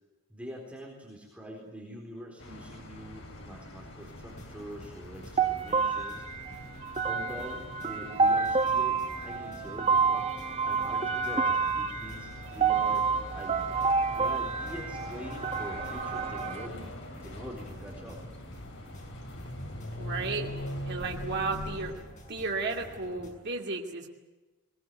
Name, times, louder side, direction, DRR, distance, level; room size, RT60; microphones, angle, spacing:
voice 1, 0.3-6.5 7.0-10.2 10.6-13.1 13.3-13.7 14.1-16.9 17.2-18.2, equal, 5° right, -2 dB, 4.1 m, -44 dB
sound 1, 2.4-21.9, left 1 dB, 55° left, 4.5 m, -43 dB
sound 2, 4.0-23.3, equal, 35° left, 6.1 m, -51 dB
sound 3, 5.4-16.7, right 5 dB, 30° right, 1.2 m, -29 dB
voice 2, 20.0-20.5 20.8-21.9 22.3-24.1, right 3 dB, 50° right, 0 dB, 2.5 m, -33 dB
21.0 x 21.0 x 9.3 m, 1.2 s
head